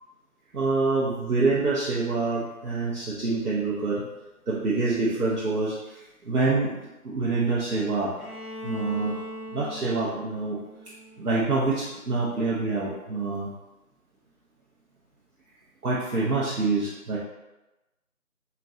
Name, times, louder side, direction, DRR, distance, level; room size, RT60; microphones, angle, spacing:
voice 1, 0.5-4.0 4.5-6.7 7.0-8.2 8.6-9.2 9.5-10.6 11.2-13.5 15.8-17.2, right 3 dB, 80° right, -7 dB, 0.8 m, -26 dB
Bowed string instrument, 8.2-12.0, equal, 70° left, 1.1 m, -40 dB
4.0 x 2.2 x 2.5 m, 1.0 s
figure-of-eight pair, 170°, 44 cm